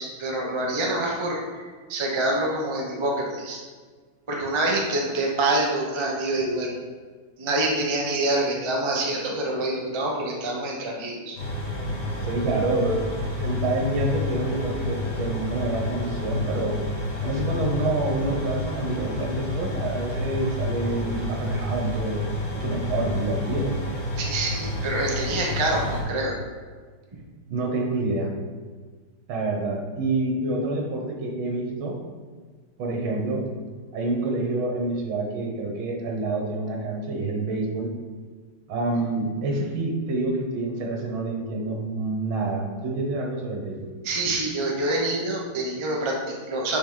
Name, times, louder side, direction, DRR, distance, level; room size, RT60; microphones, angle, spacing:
voice 1, 0.0-3.6 4.3-6.8 7.4-11.4 11.8-11.9 24.2-26.4 44.0-46.8, right 2 dB, 25° right, -2 dB, 0.6 m, -26 dB
sound 1, 11.4-26.0, left 2 dB, 75° left, 3.0 m, -29 dB
voice 2, 12.2-13.0 13.4-16.8 17.2-23.7 27.5-28.3 29.3-32.0 32.8-33.4 33.9-37.9 38.7-43.9, right 2 dB, 80° right, 0 dB, 2.0 m, -27 dB
7.5 x 5.9 x 3.9 m, 1.5 s
omnidirectional pair, 2.2 m